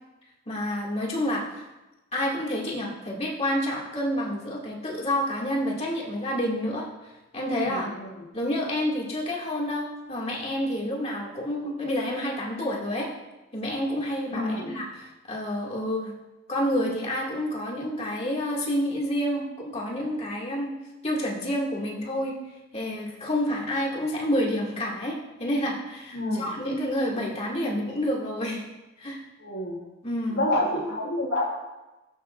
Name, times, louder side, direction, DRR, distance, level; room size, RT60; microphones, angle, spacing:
voice 1, 0.5-1.6 2.1-6.9 7.3-7.9 8.3-13.1 13.5-16.1 16.5-20.7 21.0-22.4 22.7-28.6 29.0-29.2 30.0-30.5, equal, 30° left, -3 dB, 2.3 m, -29 dB
voice 2, 7.6-8.1 14.3-14.7 26.1-26.5 29.4-29.8 30.3-31.5, left 1 dB, 70° left, -7 dB, 2.9 m, -28 dB
17.0 x 8.9 x 2.6 m, 1.1 s
head